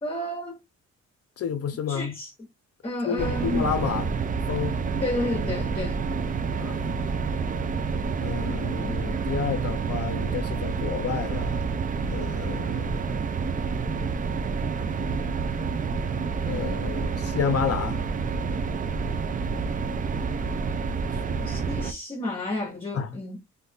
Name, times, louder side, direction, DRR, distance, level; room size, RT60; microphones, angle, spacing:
voice 1, 0.0-0.6 1.9-2.3 2.8-3.7 5.0-6.0 21.5-23.4, left 1 dB, 20° left, 1.0 m, -31 dB
voice 2, 1.4-2.1 3.1-4.1 4.5-4.8 6.6-6.9 8.2-11.6 12.1-13.1 16.4-18.0 22.9-23.2, left 7 dB, 50° left, 0.6 m, -30 dB
sound 1, 3.2-21.9, right 5 dB, 25° right, 0.5 m, -28 dB
2.8 x 2.5 x 3.5 m
cardioid pair, 90°, 30 cm